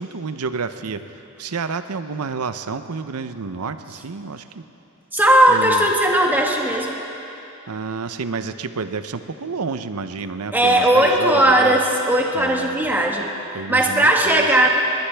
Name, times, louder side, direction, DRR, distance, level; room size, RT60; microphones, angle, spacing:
voice 1, 0.0-4.6 5.5-5.9 7.7-11.8 12.3-12.8 13.5-14.7, right 4 dB, 80° right, 10 dB, 0.7 m, -29 dB
voice 2, 5.1-7.0 10.5-13.3 13.7-14.7, right 1 dB, 10° right, -1 dB, 1.6 m, -17 dB
20.5 x 19.5 x 3.5 m, 2.9 s
head